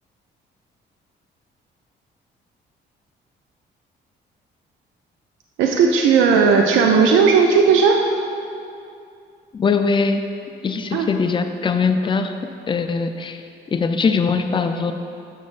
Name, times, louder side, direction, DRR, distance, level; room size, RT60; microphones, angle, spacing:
voice 1, 5.6-8.0 10.9-11.1, right 5 dB, 90° right, 2 dB, 0.4 m, -15 dB
voice 2, 9.5-10.2 10.6-12.4 12.7-13.4 13.7-14.9, left 5 dB, 25° left, 7 dB, 0.4 m, -21 dB
7.3 x 6.1 x 2.5 m, 2.6 s
cardioid pair, 90°, 20 cm